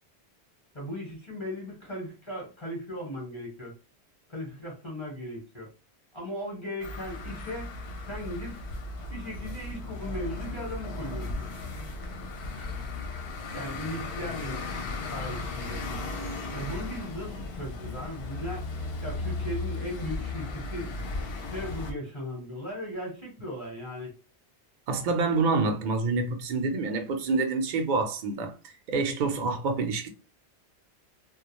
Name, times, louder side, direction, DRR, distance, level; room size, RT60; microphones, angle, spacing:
voice 1, 0.7-3.7 4.3-5.7 6.1-7.7 8.0-8.6 9.1-11.3 13.5-15.8 16.5-18.7 19.0-20.9 21.5-24.2, left 1 dB, 30° left, 0.9 m, -37 dB
sound 1, 6.8-21.9, left 2 dB, 65° left, 0.8 m, -36 dB
voice 2, 24.9-28.5 28.9-30.1, right 3 dB, 55° right, 0.6 m, -27 dB
2.3 x 2.1 x 2.9 m
omnidirectional pair, 1.1 m